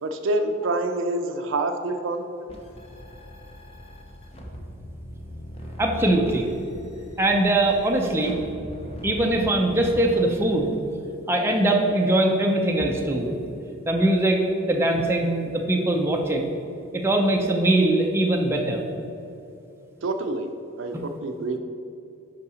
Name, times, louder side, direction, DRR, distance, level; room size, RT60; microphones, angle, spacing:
voice 1, 0.0-2.2 20.0-20.5 20.8-21.6, right 2 dB, 65° right, 6 dB, 0.5 m, -26 dB
sound 1, 2.5-10.2, equal, 30° left, 0.8 m, -40 dB
voice 2, 5.8-6.5 7.2-8.4 9.0-10.8 11.3-13.3 13.9-14.4 14.7-16.5 16.9-18.8, right 1 dB, 10° right, 0 dB, 0.6 m, -21 dB
5.7 x 4.7 x 6.2 m, 2.8 s
head